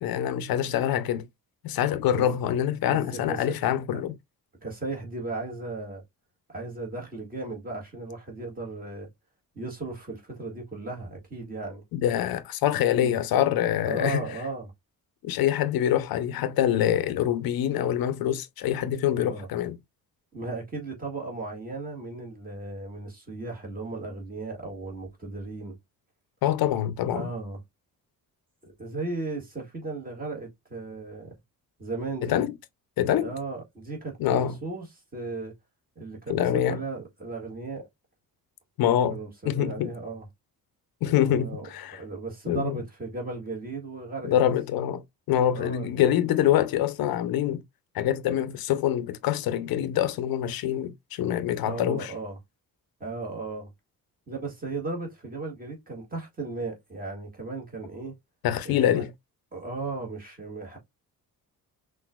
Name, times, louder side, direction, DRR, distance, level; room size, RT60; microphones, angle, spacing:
voice 1, 0.0-1.3 1.6-4.1 11.9-14.2 15.2-19.8 26.4-27.3 32.2-32.5 33.0-33.3 34.2-34.6 36.3-36.8 38.8-39.2 39.5-39.9 41.0-42.0 42.5-42.8 44.2-45.0 45.3-47.6 47.9-52.1 58.4-59.1, left 11 dB, 70° left, 0.6 m, -25 dB
voice 2, 2.9-3.6 3.9-4.0 4.6-6.0 6.5-9.1 9.5-11.8 12.9-13.2 13.8-14.7 19.1-19.5 20.3-25.8 27.1-27.6 28.6-31.3 31.8-32.4 33.2-34.9 35.1-35.5 35.9-37.9 39.1-40.3 41.3-44.4 45.6-45.9 51.7-52.4 53.0-53.7 54.3-58.1 58.6-59.0 59.5-60.8, right 3 dB, 25° right, 1.7 m, -36 dB
5.9 x 2.5 x 2.2 m
cardioid pair, 170°, 37 cm